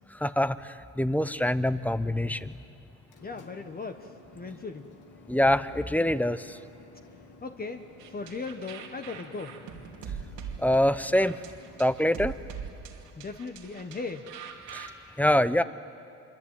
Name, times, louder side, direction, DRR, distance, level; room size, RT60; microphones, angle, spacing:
voice 1, 0.2-0.6 1.0-2.5 5.3-6.6 10.6-11.4 11.8-12.4 14.7-14.9 15.2-15.6, left 1 dB, 5° left, 14 dB, 0.8 m, -24 dB
sound 1, 2.9-11.8, left 3 dB, 85° left, 2.5 m, -53 dB
voice 2, 3.2-4.9 7.4-9.6 13.2-14.3, left 4 dB, 30° left, 6 dB, 1.3 m, -38 dB
sound 2, 8.0-14.9, right 7 dB, 90° right, 2.7 m, -42 dB
26.0 x 24.0 x 9.1 m, 2.8 s
cardioid pair, 90°, 30 cm